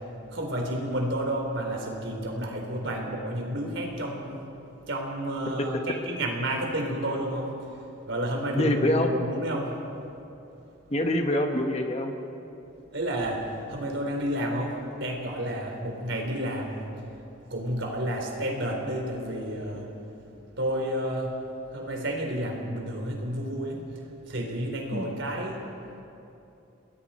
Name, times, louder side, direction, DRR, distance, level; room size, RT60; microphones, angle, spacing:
voice 1, 0.3-4.5 4.9-7.5 8.1-9.7 12.9-16.8 17.5-19.9 20.6-21.3 21.7-23.8 24.3-25.6, right 1 dB, 65° right, 1 dB, 3.8 m, -30 dB
voice 2, 8.6-9.2 10.9-12.1 24.9-25.1, left 1 dB, 30° left, 4 dB, 1.3 m, -25 dB
29.5 x 20.5 x 4.4 m, 2.8 s
head